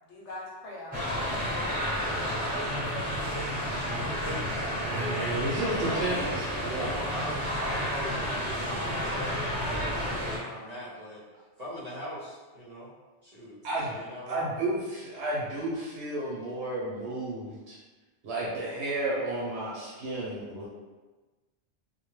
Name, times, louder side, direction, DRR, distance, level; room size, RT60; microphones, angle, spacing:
voice 1, 0.1-2.5 7.5-8.2, left 1 dB, 80° left, -4 dB, 0.9 m, -41 dB
sound 1, 0.9-10.4, equal, 10° right, 1.1 m, -31 dB
voice 2, 3.6-4.6 5.8-6.1 6.8-11.2 11.6-12.9 13.2-14.5, equal, 45° right, -9 dB, 0.6 m, -40 dB
voice 3, 4.6-6.9 13.6-14.0 14.3-17.8 18.2-20.7, right 2 dB, 75° right, -5 dB, 0.8 m, -32 dB
2.1 x 2.1 x 3.0 m, 1.2 s
omnidirectional pair, 1.2 m